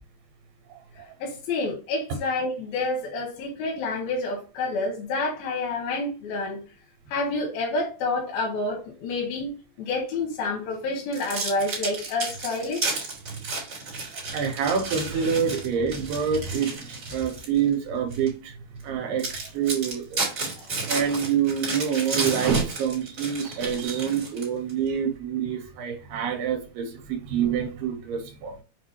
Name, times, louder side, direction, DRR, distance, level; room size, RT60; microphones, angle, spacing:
voice 1, 1.2-6.6 7.1-9.5 9.8-12.9 20.6-20.7, left 3 dB, 90° left, 2.6 m, -28 dB
sound 1, 11.1-17.6 18.1-18.3 18.8-18.9 19.2-24.7, right 3 dB, 40° right, 1.6 m, -32 dB
voice 2, 14.1-18.5 18.8-20.2 20.9-28.6, right 7 dB, 90° right, 2.4 m, -27 dB
6.0 x 2.5 x 2.9 m
omnidirectional pair, 4.1 m